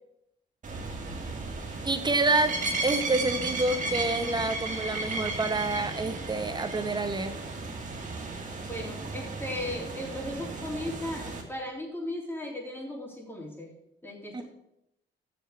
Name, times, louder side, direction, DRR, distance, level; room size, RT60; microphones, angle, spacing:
sound 1, 0.6-11.4, right 3 dB, 40° right, 2.4 m, -35 dB
voice 1, 1.8-7.4 14.3-14.4, right 2 dB, 20° right, 8 dB, 1.2 m, -28 dB
voice 2, 8.7-13.7 14.0-14.4, left 1 dB, 10° left, -1 dB, 3.5 m, -36 dB
7.2 x 6.9 x 8.0 m, 0.81 s
cardioid pair, 90°, 20 cm